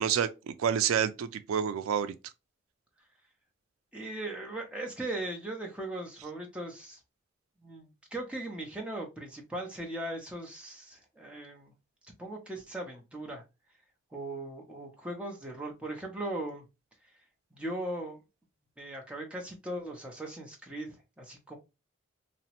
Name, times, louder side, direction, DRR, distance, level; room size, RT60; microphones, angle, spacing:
voice 1, 0.0-2.1, right 8 dB, 90° right, 0.3 m, -28 dB
voice 2, 3.9-7.0 7.6-11.7 12.2-13.4 14.1-16.6 17.5-18.2 18.8-21.6, right 1 dB, 5° right, 0.6 m, -39 dB
2.8 x 2.0 x 2.8 m
head